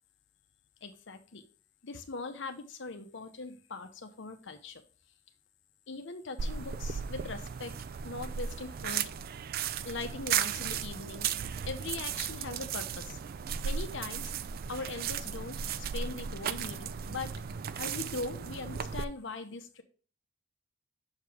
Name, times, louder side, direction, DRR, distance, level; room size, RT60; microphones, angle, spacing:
voice 1, 0.8-1.4 1.8-4.8 5.9-7.7 8.0-9.1 9.8-13.2 13.6-14.3 14.7-17.3 17.7-19.8, left 3 dB, 65° left, 8 dB, 0.8 m, -41 dB
sound 1, 6.4-19.0, right 7 dB, 45° right, 0.3 m, -35 dB
6.5 x 4.8 x 3.4 m, 0.39 s
head